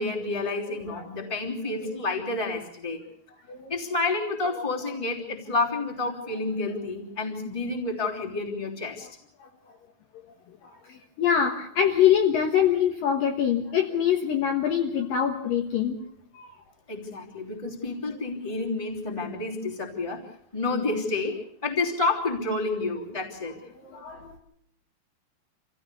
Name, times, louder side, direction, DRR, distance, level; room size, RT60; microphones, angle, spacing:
voice 1, 0.0-3.0 3.7-9.1 16.9-20.2 20.5-23.5, left 3 dB, 10° left, -1 dB, 2.5 m, -29 dB
voice 2, 10.6-16.0 16.3-16.5 23.8-24.4, left 9 dB, 65° left, 2 dB, 2.6 m, -24 dB
27.0 x 16.0 x 6.9 m, 0.69 s
omnidirectional pair, 5.2 m